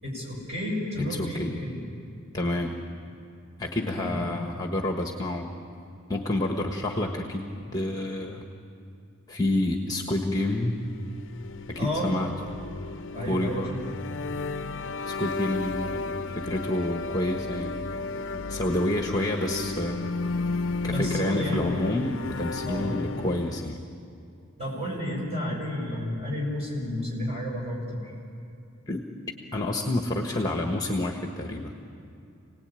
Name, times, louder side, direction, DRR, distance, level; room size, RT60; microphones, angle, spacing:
voice 1, 0.0-1.8 3.9-4.2 11.8-12.1 13.1-13.8 20.9-21.7 22.7-22.9 24.6-28.1, left 1 dB, 30° right, -3 dB, 7.1 m, -31 dB
voice 2, 1.0-1.5 2.3-2.8 3.6-5.5 6.1-8.4 9.3-10.8 11.7-12.3 13.3-13.8 15.1-17.8 18.5-20.1 20.8-23.8 28.9-29.0 29.5-31.7, left 1 dB, 20° left, 3 dB, 1.4 m, -29 dB
sound 1, 10.8-23.8, left 3 dB, 60° left, 0.6 m, -33 dB
27.5 x 18.5 x 9.1 m, 2.7 s
head